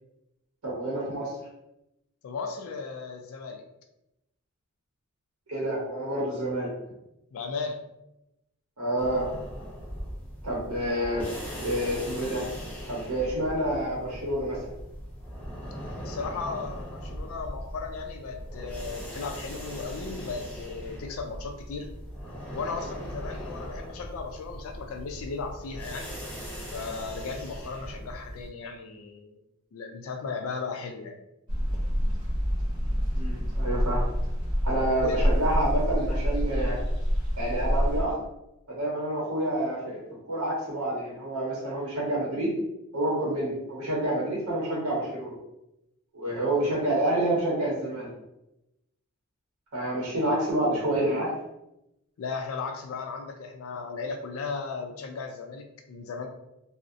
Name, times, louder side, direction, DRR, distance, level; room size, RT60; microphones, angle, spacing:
voice 1, 0.6-1.3 5.5-6.7 8.8-9.3 10.4-11.3 11.6-12.4 12.9-14.6 33.1-34.0 34.6-36.8 37.4-38.2 38.7-42.5 42.9-45.4 46.1-48.1 49.7-51.3, right 1 dB, 80° right, -5 dB, 0.8 m, -28 dB
voice 2, 2.2-3.6 7.3-7.8 16.0-22.0 22.5-26.1 26.7-29.4 29.7-31.2 35.0-35.2 52.2-56.3, left 4 dB, 65° left, 4 dB, 0.3 m, -36 dB
sound 1, 9.0-28.5, equal, 10° left, 0.6 m, -39 dB
sound 2, 31.5-38.0, equal, 20° right, 0.9 m, -27 dB
2.5 x 2.0 x 2.5 m, 0.88 s
head